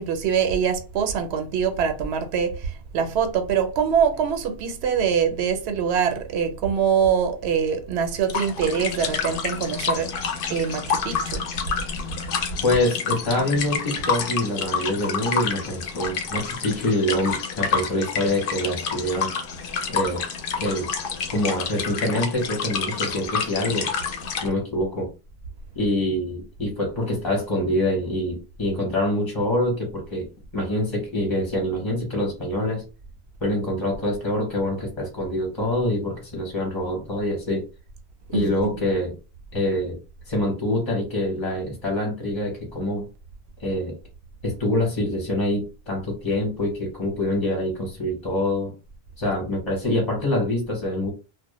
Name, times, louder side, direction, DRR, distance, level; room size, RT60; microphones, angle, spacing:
voice 1, 0.0-2.6 2.9-10.1 10.5-11.4 38.3-38.7, right 7 dB, 90° right, 0.8 m, -24 dB
sound 1, 8.2-24.5, left 6 dB, 65° left, 0.7 m, -28 dB
voice 2, 12.6-19.3 19.9-20.2 20.6-20.9 21.3-23.9 24.4-25.1 25.8-32.8 33.4-37.7 38.3-39.2 39.5-40.0 40.3-43.1 43.6-44.0 44.4-48.7 49.2-51.1, left 1 dB, 30° left, 0.8 m, -25 dB
2.1 x 2.0 x 2.9 m
omnidirectional pair, 1.1 m